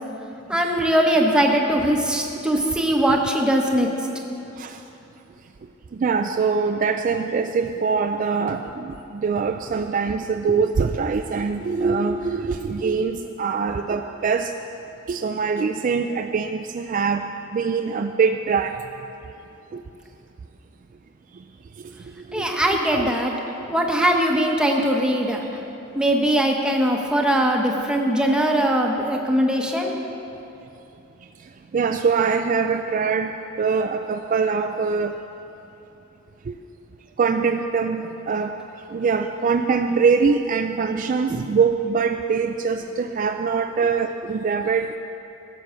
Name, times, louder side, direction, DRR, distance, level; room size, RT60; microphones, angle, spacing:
voice 1, 0.5-3.9 22.3-23.3 23.7-25.4 25.9-29.9, right 1 dB, 5° right, 0 dB, 1.0 m, -21 dB
voice 2, 5.9-14.5 15.1-18.8 19.7-19.8 21.8-23.1 23.6-23.7 31.7-35.2 36.5-36.6 37.2-38.5 38.9-45.0, right 5 dB, 40° right, 6 dB, 0.3 m, -23 dB
15.0 x 7.0 x 6.3 m, 2.9 s
head